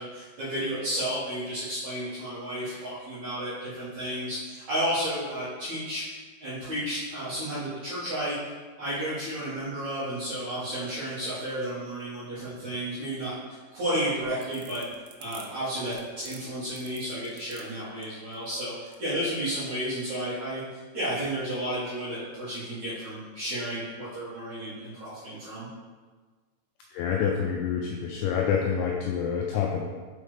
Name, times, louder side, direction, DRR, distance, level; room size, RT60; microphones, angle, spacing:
voice 1, 0.0-6.0 6.4-8.3 8.8-14.8 15.2-25.7, equal, 55° right, -13 dB, 2.3 m, -32 dB
sound 1, 14.1-19.2, right 7 dB, 85° right, 3.1 m, -50 dB
voice 2, 26.9-29.8, left 7 dB, 85° left, 0 dB, 2.6 m, -27 dB
6.5 x 5.3 x 3.3 m, 1.4 s
omnidirectional pair, 5.8 m